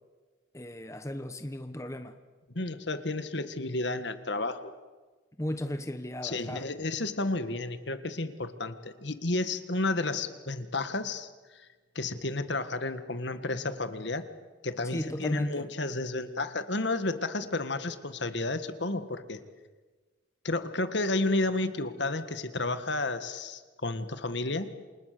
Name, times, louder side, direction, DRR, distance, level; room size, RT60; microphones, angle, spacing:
voice 1, 0.5-2.2 5.4-6.7 14.9-15.7, equal, 15° left, 8 dB, 1.0 m, -35 dB
voice 2, 2.5-4.7 6.2-11.7 12.0-14.3 14.6-19.4 20.4-24.7, left 2 dB, 65° left, 10 dB, 1.8 m, -32 dB
28.5 x 27.0 x 6.8 m, 1.3 s
head